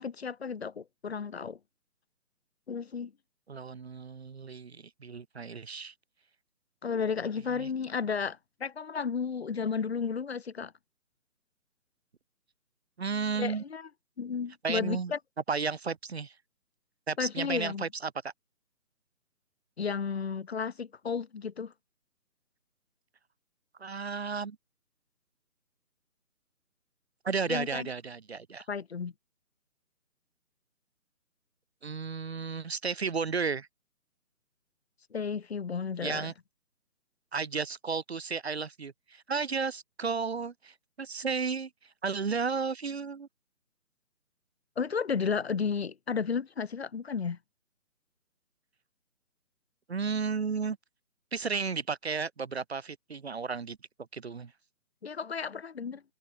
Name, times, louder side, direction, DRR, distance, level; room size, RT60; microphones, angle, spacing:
voice 1, 0.0-1.6 2.7-3.1 6.8-10.7 13.3-13.9 14.2-15.2 17.2-17.9 19.8-21.7 27.5-27.9 28.7-29.1 35.1-36.3 44.8-47.4 55.0-56.0, left 6 dB, 40° left, 2.2 m, -33 dB
voice 2, 3.5-5.9 7.6-7.7 13.0-13.6 14.6-15.1 15.5-16.3 17.1-18.3 23.8-24.6 27.2-28.6 31.8-33.7 36.0-36.3 37.3-41.7 42.0-43.3 49.9-50.8 51.3-53.8 54.1-54.5, right 5 dB, 40° right, 1.3 m, -33 dB
figure-of-eight pair, 165°, 46 cm